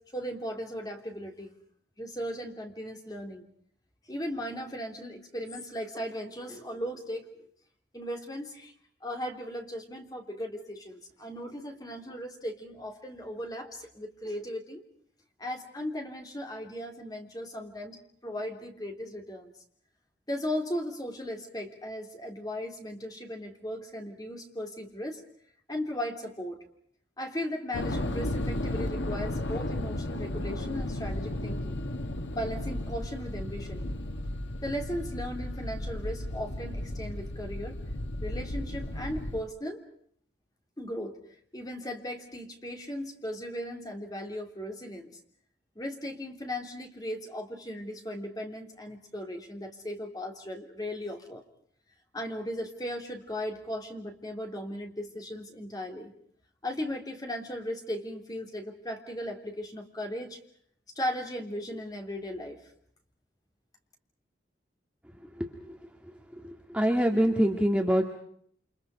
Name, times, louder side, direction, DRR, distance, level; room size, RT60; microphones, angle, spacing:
voice 1, 0.1-1.5 2.0-3.4 4.1-7.3 7.9-8.7 9.0-14.8 15.4-19.5 20.3-25.2 25.7-26.6 27.2-31.8 32.3-33.9 34.6-37.8 38.2-39.8 40.8-41.2 41.5-45.1 45.7-51.4 52.1-56.1 56.6-60.4 60.9-62.6, equal, 20° left, 3 dB, 3.3 m, -37 dB
sound 1, 27.7-39.4, left 1 dB, 90° left, 1.4 m, -34 dB
voice 2, 66.4-68.0, equal, 5° right, 2 dB, 1.9 m, -25 dB
29.0 x 27.5 x 5.0 m, 0.64 s
head